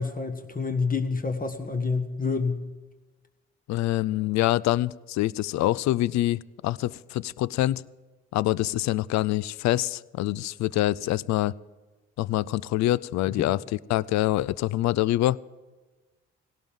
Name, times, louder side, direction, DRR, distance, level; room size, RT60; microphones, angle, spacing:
voice 1, 0.0-2.6 13.4-13.5, left 4 dB, 25° left, 6 dB, 1.6 m, -28 dB
voice 2, 3.7-7.8 8.3-11.5 12.2-13.6 13.9-15.4, left 15 dB, 60° left, 22 dB, 0.5 m, -25 dB
17.0 x 17.0 x 3.7 m, 1.2 s
hypercardioid pair, 45°, 32 cm